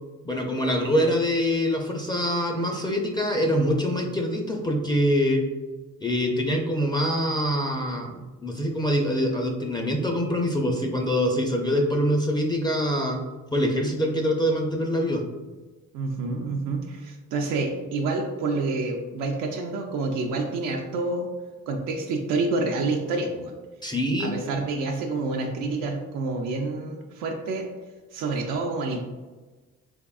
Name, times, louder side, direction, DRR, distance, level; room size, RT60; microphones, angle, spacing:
voice 1, 0.2-5.4 6.0-13.2 13.5-15.2 23.8-24.4, equal, 15° left, 1 dB, 0.4 m, -24 dB
voice 2, 15.9-21.3 21.7-23.5 24.2-27.7 28.1-29.1, right 3 dB, 90° right, 0 dB, 0.5 m, -28 dB
3.5 x 3.4 x 2.3 m, 1.2 s
cardioid pair, 90°, 30 cm